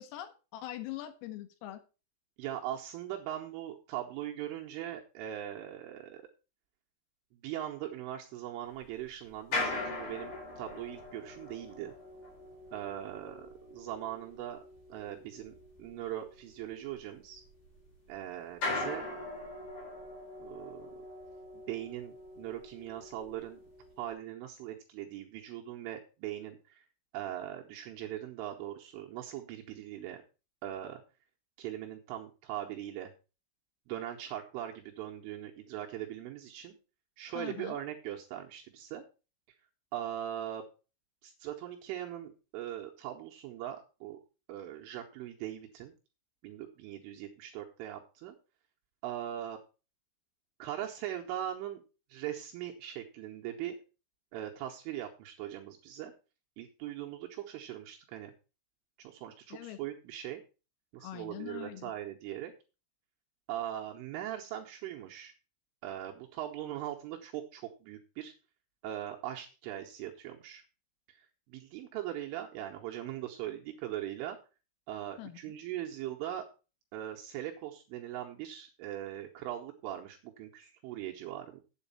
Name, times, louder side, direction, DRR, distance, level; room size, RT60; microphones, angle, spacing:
voice 1, 0.0-1.8 37.4-37.8 59.5-59.8 61.0-61.9 75.2-75.4, left 13 dB, 85° left, 9 dB, 3.6 m, -43 dB
voice 2, 2.4-6.2 7.4-11.9 12.7-14.6 14.9-15.5 15.8-17.4 18.1-19.1 20.4-20.9 21.7-23.6 24.0-26.8 27.1-30.2 30.6-31.0 31.6-33.1 33.9-36.8 37.2-39.0 39.9-40.6 41.2-44.2 44.5-45.9 46.4-48.4 49.0-49.6 50.6-51.8 52.1-53.8 54.3-56.1 56.6-58.3 59.0-60.4 60.9-62.5 63.5-65.3 65.8-68.3 68.8-70.6 71.1-71.2 71.5-74.4 74.9-76.5 76.9-81.6, right 12 dB, 80° right, 1 dB, 3.4 m, -40 dB
sound 1, 8.7-18.1 18.5-24.1, left 2 dB, 40° left, 5.6 m, -41 dB
8.3 x 8.1 x 5.5 m, 0.32 s
omnidirectional pair, 5.9 m